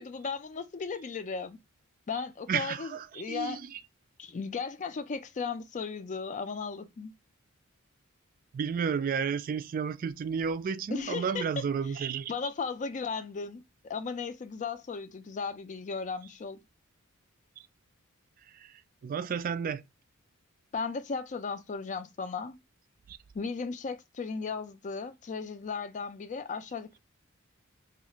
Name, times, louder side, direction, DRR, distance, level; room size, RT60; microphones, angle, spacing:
voice 1, 0.0-1.6 2.1-3.6 4.2-7.1 10.9-16.6 20.7-22.6 23.3-27.0, left 5 dB, 35° left, 0.4 m, -36 dB
voice 2, 2.5-3.8 8.5-12.3 19.0-19.8 23.1-23.2, right 6 dB, 40° right, 0.3 m, -32 dB
3.1 x 2.4 x 2.9 m
head